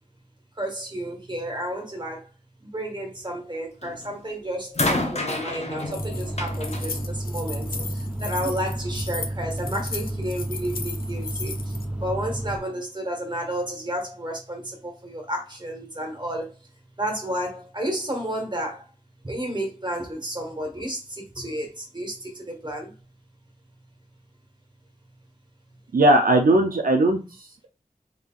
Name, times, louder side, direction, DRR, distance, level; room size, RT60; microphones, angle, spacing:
voice 1, 0.5-2.3 2.6-16.5 17.0-18.9 19.2-22.9, right 1 dB, 30° right, 1.5 m, -32 dB
sound 1, 3.8-4.2 4.7-8.0 9.0-9.1, left 1 dB, 45° left, 0.8 m, -30 dB
Keys jangling, 5.8-11.8, left 4 dB, 90° left, 0.5 m, -36 dB
sound 2, 5.9-12.6, right 1 dB, 10° right, 0.8 m, -31 dB
voice 2, 25.9-27.7, right 1 dB, 75° right, 0.5 m, -19 dB
3.7 x 3.3 x 2.4 m
wide cardioid pair, 65°, 15 cm